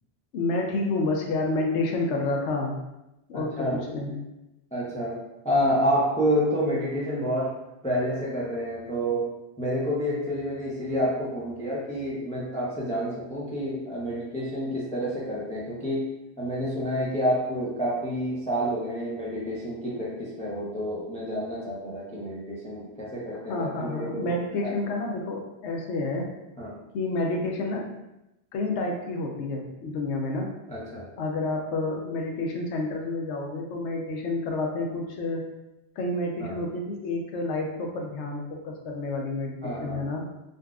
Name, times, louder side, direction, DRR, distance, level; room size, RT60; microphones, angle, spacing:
voice 1, 0.3-2.8 3.3-4.1 23.5-26.3 26.9-27.9 28.5-30.5 31.2-35.4 36.0-40.3, left 2 dB, 85° left, 1 dB, 0.9 m, -29 dB
voice 2, 3.3-4.2 4.7-7.5 7.8-9.3 9.6-16.1 16.4-24.7 26.6-26.7 30.7-31.1 36.4-36.6 39.6-40.0, equal, 10° left, -6 dB, 0.4 m, -29 dB
3.8 x 2.3 x 2.3 m, 0.93 s
omnidirectional pair, 1.1 m